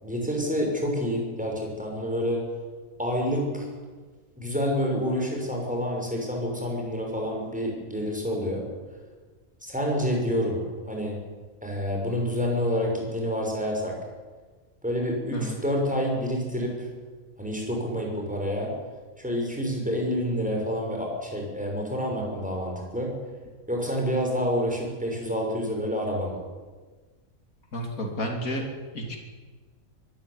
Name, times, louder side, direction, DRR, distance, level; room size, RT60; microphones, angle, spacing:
voice 1, 0.0-2.4 3.0-3.7 4.4-8.6 9.6-10.6 10.9-11.2 11.6-13.9 14.8-16.9 17.4-18.7 19.2-23.1 23.7-26.4, equal, 5° right, 0 dB, 6.1 m, -28 dB
voice 2, 27.7-28.6 28.9-29.2, equal, 75° left, 2 dB, 3.4 m, -31 dB
23.0 x 13.5 x 9.8 m, 1.4 s
omnidirectional pair, 1.5 m